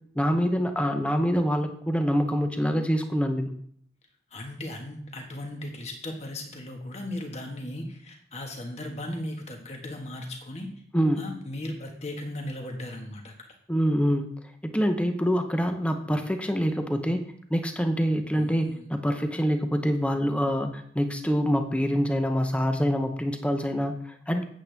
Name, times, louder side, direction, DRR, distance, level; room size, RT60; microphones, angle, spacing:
voice 1, 0.1-3.5 10.9-11.3 13.7-14.3 14.6-17.2 17.5-24.4, equal, 5° left, 6 dB, 0.7 m, -25 dB
voice 2, 4.3-10.7 11.2-13.5 18.3-18.9, left 1 dB, 40° left, 2 dB, 1.5 m, -37 dB
8.3 x 8.3 x 3.5 m, 0.65 s
head